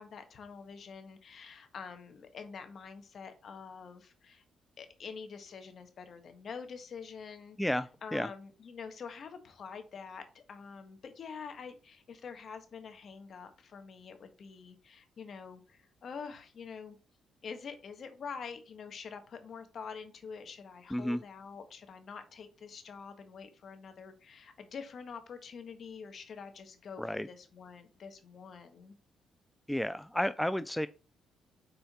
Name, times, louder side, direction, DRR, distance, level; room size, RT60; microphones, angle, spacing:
voice 1, 0.0-4.4 4.8-7.6 8.0-17.0 17.4-29.0, left 6 dB, 55° left, 1.4 m, -46 dB
voice 2, 7.6-8.3 20.9-21.2 27.0-27.3 29.7-30.9, left 1 dB, 5° left, 0.3 m, -32 dB
5.7 x 4.3 x 4.2 m
cardioid pair, 90°, 0 cm